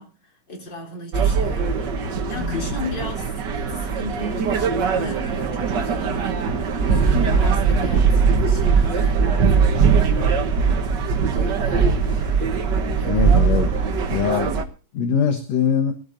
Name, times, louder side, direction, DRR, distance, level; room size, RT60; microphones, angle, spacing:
voice 1, 0.0-10.5 11.3-12.7 12.9-14.0, left 2 dB, 30° left, 2 dB, 4.0 m, -37 dB
sound 1, 1.1-14.6, right 5 dB, 75° right, 1.0 m, -20 dB
voice 2, 13.0-13.7 14.1-14.5 14.9-15.9, left 7 dB, 60° left, 7 dB, 2.1 m, -22 dB
21.0 x 13.5 x 2.6 m, 0.37 s
omnidirectional pair, 4.0 m